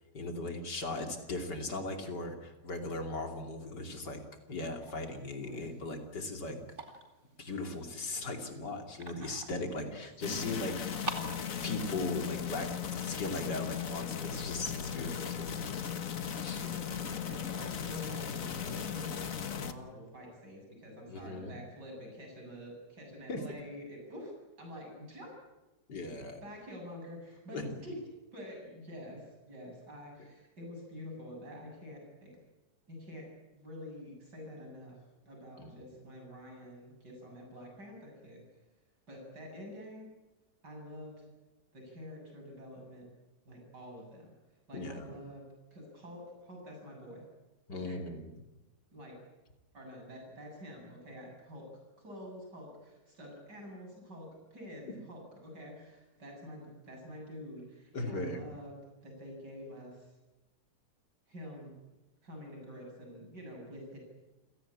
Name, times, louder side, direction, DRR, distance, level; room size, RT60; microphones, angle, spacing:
voice 1, 0.1-4.2 4.5-6.6 7.4-10.8 11.0-11.2 11.6-12.7 13.0-15.8 16.4-16.6 21.1-21.6 23.3-23.4 25.9-26.4 27.5-27.8 35.6-35.8 44.7-45.2 47.7-48.4 57.9-58.5, left 2 dB, 75° left, 4 dB, 3.5 m, -38 dB
sound 1, 4.8-14.2, right 2 dB, 30° right, 2.7 m, -48 dB
voice 2, 5.4-5.7 9.8-10.0 16.6-16.9 17.2-25.3 26.4-28.0 28.3-32.3 32.9-35.0 35.2-38.4 39.1-40.1 40.6-41.2 41.7-43.0 43.4-44.3 44.7-45.4 45.7-47.2 47.7-48.0 48.9-49.2 49.7-51.7 52.0-58.7 59.0-60.1 61.3-61.7 62.2-64.0, equal, 75° right, 0 dB, 8.6 m, -47 dB
sound 2, 10.2-19.7, left 8 dB, 50° left, 1.6 m, -37 dB
29.0 x 17.5 x 8.7 m, 1.1 s
omnidirectional pair, 1.8 m